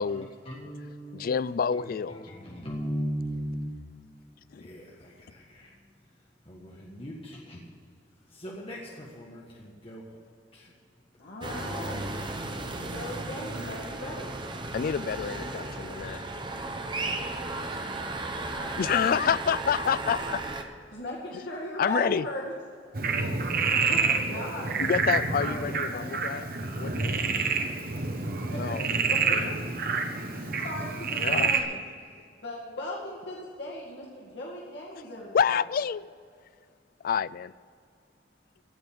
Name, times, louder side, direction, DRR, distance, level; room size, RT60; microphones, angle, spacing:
voice 1, 0.5-1.3 1.8-3.8 4.6-5.7 6.5-7.6 8.3-10.0 10.5-10.7, equal, 30° left, 1.5 m, -38 dB
voice 2, 1.1-2.2 4.5-4.7 14.7-16.2 17.7-17.8 18.8-20.4 21.8-22.3 24.8-26.5 26.8-27.1 28.6-28.9 29.3-29.6 31.2-31.5 35.3-36.1 37.0-37.5, left 7 dB, 50° left, 0.3 m, -28 dB
voice 3, 11.2-12.2 12.5-14.5 18.4-19.3 20.9-22.4 23.7-24.7 25.1-26.1 28.5-29.6 29.9-30.0 30.3-31.8 32.4-35.5, left 1 dB, 75° left, 2.1 m, -38 dB
sound 1, 11.4-20.6, right 2 dB, 25° right, 1.0 m, -35 dB
Frog, 22.9-31.6, right 4 dB, 55° right, 1.2 m, -28 dB
16.0 x 5.3 x 9.8 m
head